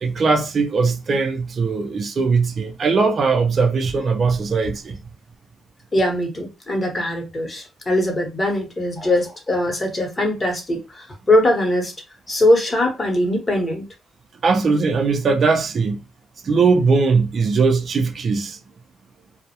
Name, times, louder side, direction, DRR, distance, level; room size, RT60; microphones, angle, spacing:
voice 1, 0.0-5.0 14.4-16.0 16.4-18.6, right 4 dB, 45° right, 0.4 m, -19 dB
voice 2, 5.9-11.9 12.3-13.9, left 1 dB, 25° left, 0.9 m, -21 dB
2.2 x 2.0 x 2.8 m
cardioid pair, 90°, 0 cm